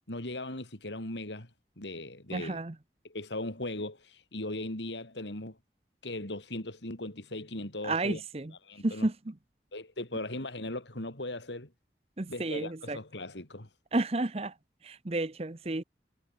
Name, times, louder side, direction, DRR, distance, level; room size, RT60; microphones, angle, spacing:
voice 1, 0.1-1.5 1.8-2.6 3.0-5.6 6.0-8.2 8.6-9.1 9.7-11.7 12.3-13.7, left 2 dB, 85° left, 3.9 m, -38 dB
voice 2, 2.3-2.7 7.8-8.5 8.8-9.3 12.2-13.0 13.9-14.5 14.8-15.8, right 2 dB, 35° right, 0.8 m, -31 dB
head